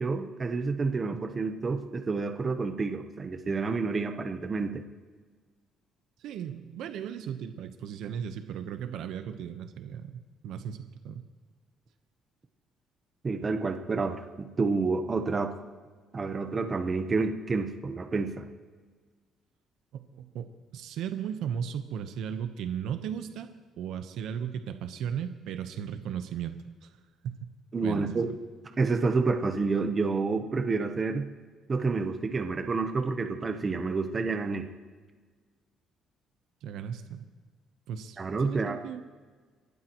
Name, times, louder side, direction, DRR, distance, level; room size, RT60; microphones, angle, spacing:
voice 1, 0.0-4.8 13.2-15.5 16.1-18.5 27.7-28.3 28.8-31.3 31.7-34.7 38.2-38.8, right 4 dB, 25° right, 6 dB, 1.0 m, -29 dB
voice 2, 6.2-11.2 19.9-23.5 23.8-26.9 27.2-27.5 27.8-28.3 36.6-37.3 37.9-39.0, right 8 dB, 75° right, 8 dB, 1.0 m, -36 dB
28.0 x 12.0 x 3.1 m, 1.5 s
cardioid pair, 140°, 0 cm